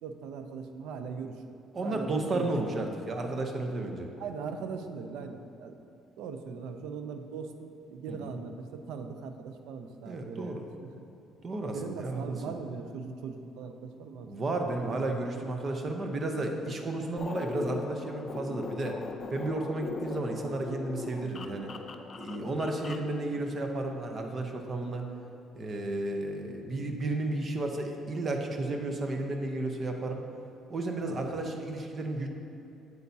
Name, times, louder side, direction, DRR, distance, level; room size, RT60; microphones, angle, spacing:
voice 1, 0.0-2.8 4.2-5.8 6.2-11.1 11.7-14.3 22.4-22.6 31.0-31.3, right 5 dB, 85° right, 7 dB, 0.5 m, -40 dB
voice 2, 1.7-4.1 8.1-8.4 10.0-10.7 11.4-12.4 14.3-19.0 19.3-21.7 22.2-25.1 25.6-30.2 30.7-32.3, right 2 dB, 30° right, 3 dB, 0.7 m, -33 dB
sound 1, 17.2-23.1, left 4 dB, 30° left, 0.4 m, -39 dB
8.3 x 8.2 x 2.7 m, 2.8 s
cardioid pair, 150°, 0 cm